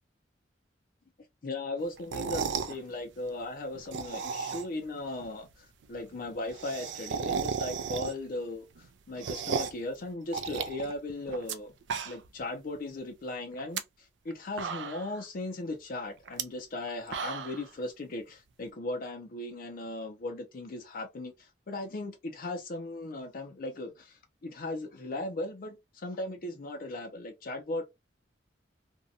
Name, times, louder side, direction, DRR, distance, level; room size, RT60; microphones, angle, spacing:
voice 1, 1.4-11.7 12.1-27.8, left 2 dB, 50° left, 0.5 m, -37 dB
sound 1, 2.0-2.8 3.7-4.9 5.2-5.3 5.5-5.6 5.8-5.9 6.2-8.4 8.8-9.9 10.3-11.6 11.8-12.4 12.8-12.9 13.5-13.8 14.3-14.4 14.6-15.2 16.3-16.4 16.9-17.7, right 6 dB, 75° right, 0.4 m, -34 dB
2.6 x 2.2 x 2.6 m
head